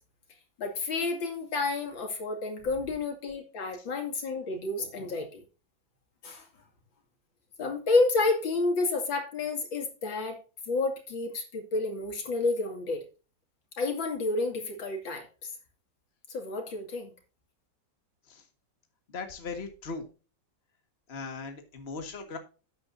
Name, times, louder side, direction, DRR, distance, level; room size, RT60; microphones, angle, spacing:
voice 1, 0.6-5.4 6.2-6.4 7.6-10.4 10.7-13.0 13.8-15.3 16.3-17.1, left 3 dB, 80° left, 3 dB, 3.2 m, -30 dB
voice 2, 19.1-20.1 21.1-22.4, left 4 dB, 35° left, 6 dB, 1.8 m, -38 dB
12.0 x 8.9 x 2.7 m, 0.32 s
omnidirectional pair, 2.1 m